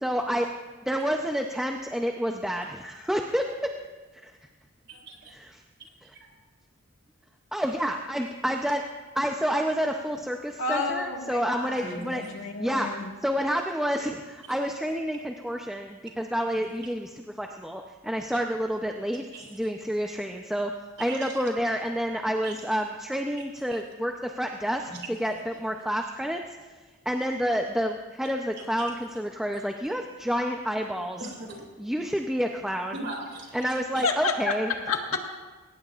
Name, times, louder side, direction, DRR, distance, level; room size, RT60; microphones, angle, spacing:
voice 1, 0.0-0.5 0.9-3.4 4.2-4.3 5.3-5.6 7.5-8.8 9.2-12.2 12.6-12.9 13.2-19.2 19.5-20.7 21.0-26.4 27.1-31.2 31.8-32.9 33.5-34.7, equal, ahead, 2 dB, 0.6 m, -29 dB
voice 2, 4.9-5.3 5.8-5.9 6.2-6.3 11.8-12.3 19.3-19.5 21.0-21.4 22.4-22.7 24.9-25.1 31.2-31.6 32.9-34.0, right 2 dB, 50° right, 1 dB, 2.7 m, -40 dB
voice 3, 10.6-13.1 34.0-35.2, left 4 dB, 85° left, 2 dB, 1.7 m, -30 dB
21.5 x 18.5 x 2.5 m, 1.3 s
head